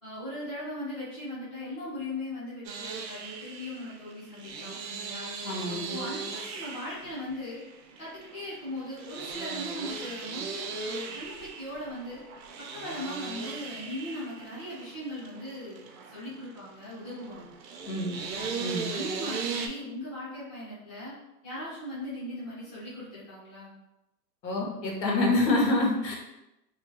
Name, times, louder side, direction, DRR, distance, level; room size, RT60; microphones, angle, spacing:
voice 1, 0.0-5.3 5.9-7.6 8.0-12.2 12.6-17.5 18.1-18.5 18.9-21.2 21.4-23.7, left 1 dB, 15° left, -13 dB, 0.8 m, -39 dB
sound 1, 2.6-19.7, right 5 dB, 90° right, 0.6 m, -38 dB
voice 2, 5.4-6.0 17.9-18.2 18.6-19.0 24.4-26.2, left 2 dB, 85° left, -1 dB, 1.0 m, -27 dB
2.3 x 2.2 x 3.0 m, 0.94 s
hypercardioid pair, 170°, 49 cm